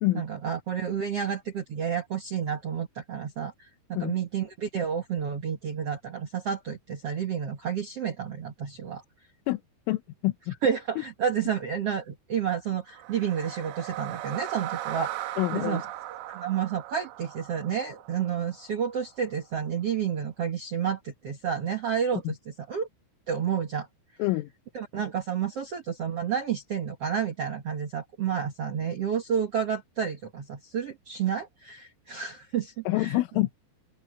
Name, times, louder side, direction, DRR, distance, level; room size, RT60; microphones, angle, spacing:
voice 1, 0.1-9.0 10.6-15.8 16.3-22.9 23.3-23.9 24.7-33.2, right 8 dB, 85° right, 1.3 m, -30 dB
voice 2, 9.9-10.6 11.0-11.1 15.4-15.8 22.3-22.4 24.2-24.5 32.9-33.6, left 18 dB, 90° left, 3.5 m, -27 dB
sound 1, 12.9-19.1, right 14 dB, 70° right, 2.6 m, -38 dB
open air
omnidirectional pair, 5.6 m